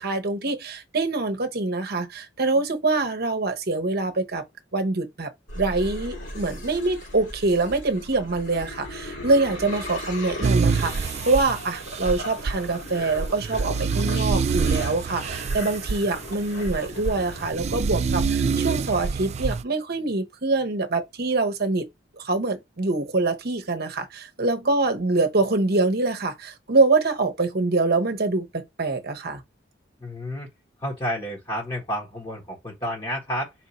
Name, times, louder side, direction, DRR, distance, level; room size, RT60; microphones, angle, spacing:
voice 1, 0.0-4.4 4.7-5.3 5.6-21.9 22.2-29.4, right 3 dB, 55° right, 0.9 m, -25 dB
sound 1, 5.5-17.5, left 1 dB, 85° left, 2.1 m, -38 dB
sound 2, 10.4-19.6, right 5 dB, 35° right, 0.3 m, -26 dB
voice 2, 30.0-30.5 30.8-33.5, equal, 25° left, 1.3 m, -30 dB
4.4 x 2.6 x 4.1 m
head